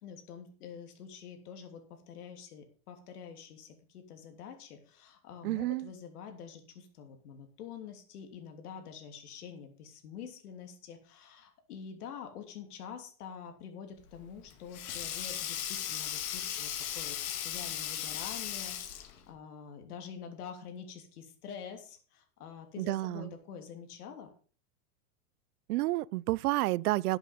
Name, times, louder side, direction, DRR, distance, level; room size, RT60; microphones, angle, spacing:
voice 1, 0.0-24.3, left 7 dB, 85° left, 3.0 m, -47 dB
voice 2, 5.4-5.9 22.8-23.3 25.7-27.2, right 18 dB, 90° right, 0.5 m, -30 dB
Sink (filling or washing), 14.1-19.2, left 10 dB, 65° left, 2.1 m, -37 dB
11.5 x 8.1 x 5.2 m
supercardioid pair, 155°, 44 cm